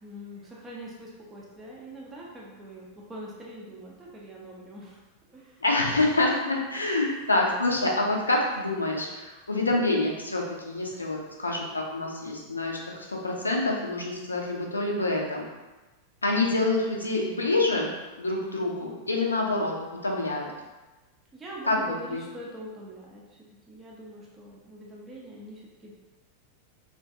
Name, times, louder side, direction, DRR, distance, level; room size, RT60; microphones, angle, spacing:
voice 1, 0.0-5.6 6.9-7.3 21.3-23.2 23.7-25.9, right 1 dB, 15° right, -4 dB, 0.5 m, -43 dB
voice 2, 5.6-15.5 16.2-17.9 18.2-19.7 20.0-20.5 21.7-22.2, left 2 dB, 80° left, -1 dB, 0.4 m, -27 dB
2.5 x 2.2 x 2.6 m, 1.2 s
figure-of-eight pair, 90°, 0 cm